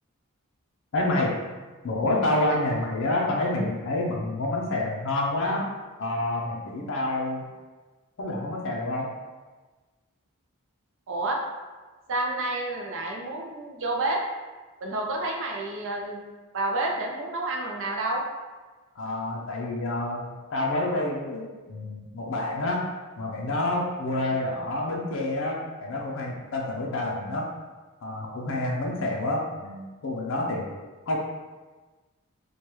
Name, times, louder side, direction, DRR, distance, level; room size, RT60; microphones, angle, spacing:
voice 1, 0.9-1.4 1.8-5.7 6.0-7.4 8.2-9.1 19.0-22.9 23.2-27.5 28.0-30.7 31.1-31.2, left 1 dB, 60° left, -1 dB, 0.5 m, -28 dB
voice 2, 11.1-11.4 12.1-14.2 14.8-16.3 16.5-18.2 24.3-24.6, right 2 dB, 60° right, 1 dB, 0.5 m, -29 dB
3.3 x 2.2 x 2.9 m, 1.3 s
head